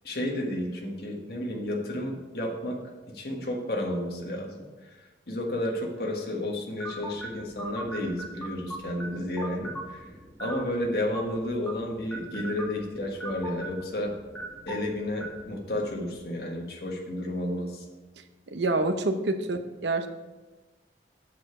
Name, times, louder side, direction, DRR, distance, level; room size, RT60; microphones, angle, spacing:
voice 1, 0.0-2.8 3.1-4.9 5.3-10.1 10.4-14.1 14.7-17.9, left 1 dB, 65° left, 0 dB, 1.4 m, -32 dB
sound 1, 6.8-16.3, right 2 dB, 5° left, 1.1 m, -41 dB
voice 2, 18.5-20.1, right 2 dB, 85° right, 8 dB, 0.7 m, -27 dB
7.6 x 6.8 x 4.9 m, 1.2 s
head